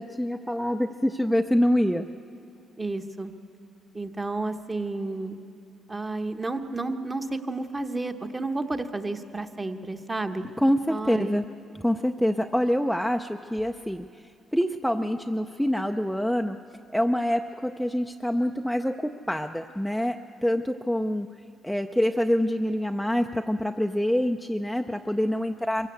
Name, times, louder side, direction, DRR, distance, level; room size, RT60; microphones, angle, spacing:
voice 1, 0.0-2.1 10.6-11.4 11.7-14.1 14.5-16.6 16.9-21.3 21.6-25.9, equal, ahead, 4 dB, 0.5 m, -26 dB
voice 2, 2.8-3.3 3.9-5.4 5.9-10.4 10.9-11.4, right 2 dB, 20° right, 7 dB, 1.1 m, -31 dB
23.0 x 16.0 x 8.2 m, 2.5 s
cardioid pair, 90°, 0 cm